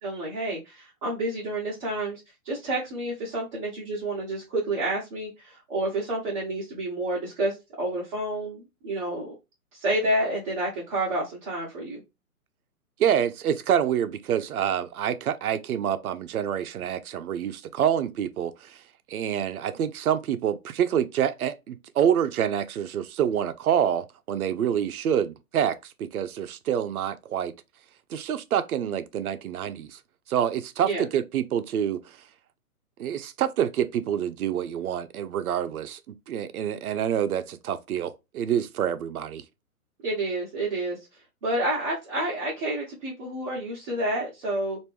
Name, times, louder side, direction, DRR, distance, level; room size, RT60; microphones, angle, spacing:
voice 1, 0.0-9.3 9.7-12.0 30.8-31.0 40.0-41.0 41.4-44.8, right 1 dB, 20° right, 0.9 m, -29 dB
voice 2, 13.0-18.8 19.1-27.5 28.1-30.0 30.3-32.2 33.0-39.4, right 9 dB, 75° right, 0.6 m, -27 dB
3.0 x 2.6 x 3.3 m
hypercardioid pair, 155°, 45 cm